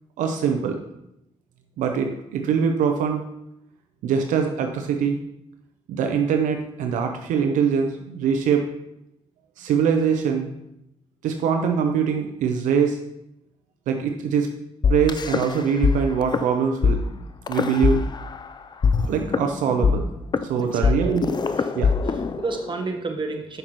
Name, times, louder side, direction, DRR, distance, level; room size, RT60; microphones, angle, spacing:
voice 1, 0.2-0.8 1.8-3.2 4.0-5.2 5.9-8.7 9.6-10.5 11.2-13.0 13.9-14.5 14.9-17.2 17.5-18.0 19.0-20.1 20.4-21.4 21.7-21.9, right 6 dB, 85° right, 4 dB, 0.6 m, -23 dB
sound 1, 14.8-15.9 16.2-16.4 16.8-16.9 17.5-18.5 18.8-22.8, left 5 dB, 35° left, 0.4 m, -22 dB
voice 2, 20.7-21.1 21.5-21.7 22.1-23.6, right 3 dB, 40° right, 4 dB, 1.1 m, -31 dB
6.5 x 5.8 x 3.0 m, 0.83 s
supercardioid pair, 60°, 13 cm